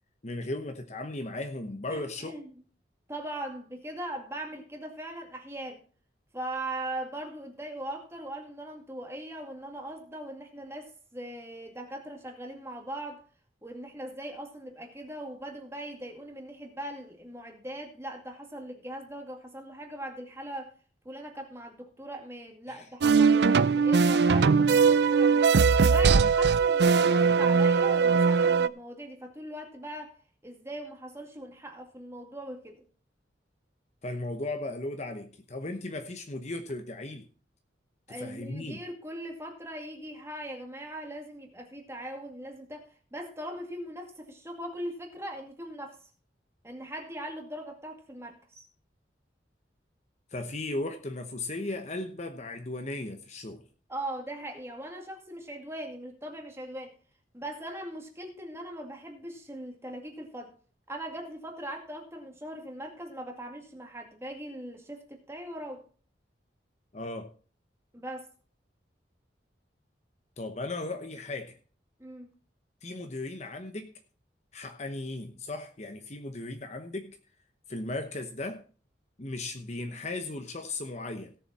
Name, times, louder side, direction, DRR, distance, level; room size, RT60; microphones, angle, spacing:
voice 1, 0.2-2.3 22.7-22.8 34.0-37.3 38.1-38.8 50.3-53.6 66.9-67.3 70.4-71.6 72.8-73.9 74.5-77.2 77.7-78.6 79.2-81.3, left 2 dB, 40° left, 6 dB, 1.0 m, -36 dB
voice 2, 1.9-2.5 3.1-5.8 6.3-13.2 13.6-20.7 21.0-25.5 25.8-30.2 30.4-32.8 38.1-46.0 46.6-48.6 53.9-57.0 57.3-60.5 60.9-65.8 67.9-68.3 72.0-72.3, right 1 dB, 15° right, 3 dB, 2.2 m, -40 dB
sound 1, 23.0-28.7, right 5 dB, 60° right, 0.4 m, -21 dB
17.0 x 7.0 x 4.2 m, 0.40 s
head